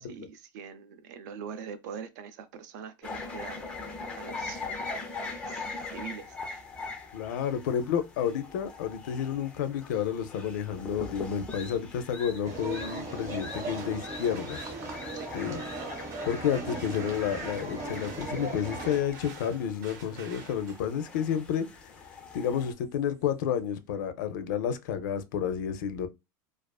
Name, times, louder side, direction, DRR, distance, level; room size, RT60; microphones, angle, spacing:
voice 1, 0.0-3.7 4.1-4.6 5.2-6.4 15.1-15.3, right 7 dB, 65° right, 0.5 m, -43 dB
sound 1, 3.0-22.7, left 3 dB, 10° left, 0.3 m, -42 dB
voice 2, 7.1-14.6 15.3-15.6 16.2-21.9 22.3-26.1, left 8 dB, 85° left, 0.4 m, -30 dB
sound 2, 12.5-19.0, right 2 dB, 30° right, 0.8 m, -38 dB
sound 3, 13.5-23.3, right 5 dB, 85° right, 0.8 m, -52 dB
2.4 x 2.3 x 2.2 m
supercardioid pair, 180°, 10 cm